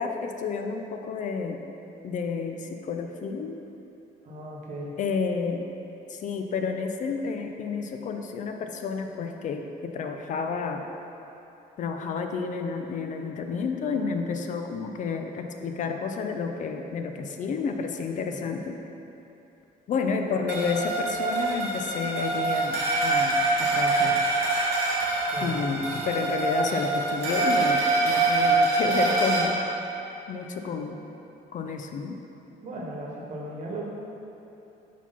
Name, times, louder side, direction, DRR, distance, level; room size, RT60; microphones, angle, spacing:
voice 1, 0.0-1.6 2.0-3.6 5.0-5.7 6.1-10.9 11.8-18.8 19.9-24.2 25.4-29.6 30.3-31.0 31.5-32.2, left 5 dB, 50° left, 5 dB, 0.4 m, -30 dB
voice 2, 4.2-4.9 18.3-18.7 25.3-25.7 30.7-31.0 32.6-33.8, right 1 dB, 45° right, -3 dB, 1.2 m, -37 dB
sound 1, 20.5-29.4, right 3 dB, 85° right, 1.1 m, -25 dB
4.6 x 4.0 x 5.6 m, 2.9 s
cardioid pair, 110°, 17 cm